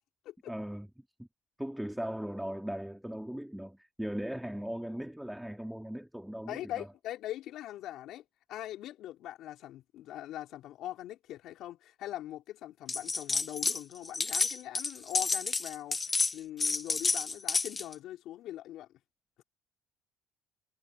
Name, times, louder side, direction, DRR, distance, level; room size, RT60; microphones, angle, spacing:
voice 1, 0.5-0.9 1.2-1.3 1.6-6.9, equal, ahead, 3.7 m, -38 dB
voice 2, 6.5-18.9 19.4-19.5, left 13 dB, 65° left, 5.3 m, -42 dB
sound 1, 12.9-13.8 14.0-17.9, left 4 dB, 20° left, 1.1 m, -30 dB
cardioid pair, 130°, 0 cm